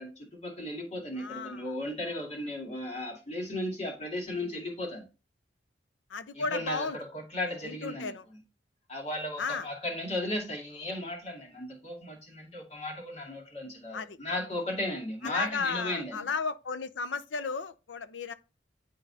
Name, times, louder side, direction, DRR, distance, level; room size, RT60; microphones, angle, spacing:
voice 1, 0.0-5.1 6.3-8.1 8.9-16.3, left 1 dB, 35° left, 2.3 m, -35 dB
voice 2, 1.2-1.6 6.1-7.0 7.6-8.2 9.4-9.7 13.9-14.2 15.2-18.3, left 5 dB, 85° left, 0.6 m, -34 dB
10.0 x 3.8 x 2.7 m
head